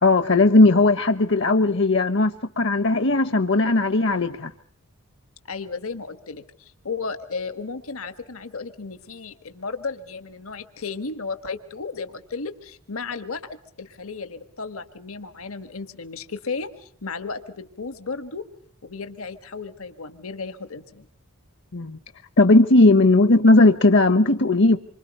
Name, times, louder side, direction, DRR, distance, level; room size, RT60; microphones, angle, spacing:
voice 1, 0.0-4.5 21.7-22.0 22.4-24.8, left 2 dB, 55° left, 11 dB, 1.0 m, -17 dB
voice 2, 5.4-13.4 13.8-18.5 18.8-21.1, left 4 dB, 70° left, 9 dB, 1.4 m, -34 dB
27.5 x 25.0 x 5.4 m, 0.65 s
head